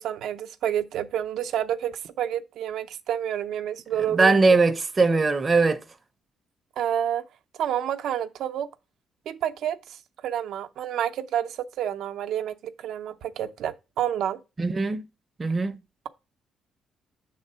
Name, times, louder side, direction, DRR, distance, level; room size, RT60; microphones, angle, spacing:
voice 1, 0.0-4.6 6.8-7.2 7.6-8.7 9.3-14.4, right 10 dB, 80° right, 0.6 m, -29 dB
voice 2, 4.1-5.8 14.6-15.0 15.4-15.8, right 3 dB, 30° right, 0.6 m, -20 dB
7.3 x 3.7 x 5.5 m
cardioid pair, 90°, 0 cm